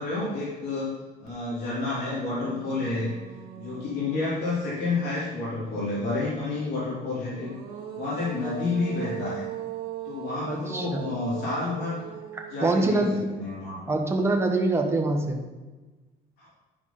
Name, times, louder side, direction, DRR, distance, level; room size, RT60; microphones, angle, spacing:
voice 1, 0.0-3.1 3.5-7.5 7.9-9.4 10.0-12.0 12.5-13.9 16.4-16.5, left 3 dB, 75° left, -8 dB, 3.1 m, -30 dB
sound 1, 1.3-1.4 1.7-5.4 7.1-14.3, right 10 dB, 85° right, 1.5 m, -40 dB
voice 2, 10.5-11.0 12.6-13.3 13.9-15.4, right 2 dB, 15° right, 1 dB, 1.4 m, -24 dB
11.0 x 4.7 x 5.6 m, 1.2 s
cardioid pair, 110°, 17 cm